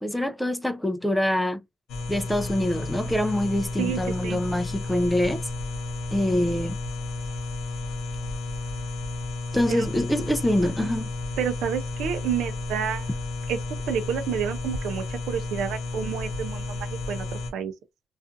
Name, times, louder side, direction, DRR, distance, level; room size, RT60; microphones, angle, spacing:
voice 1, 0.0-1.6 2.1-5.4 6.1-6.8 9.5-11.1, left 1 dB, 5° left, 0.4 m, -25 dB
sound 1, 1.9-17.5, left 2 dB, 85° left, 0.6 m, -32 dB
voice 2, 3.8-4.4 9.7-9.9 10.8-10.9 11.4-13.1 13.5-13.6 13.9-17.3 17.5-17.7, right 8 dB, 85° right, 0.4 m, -29 dB
2.4 x 2.4 x 2.5 m
cardioid pair, 90°, 0 cm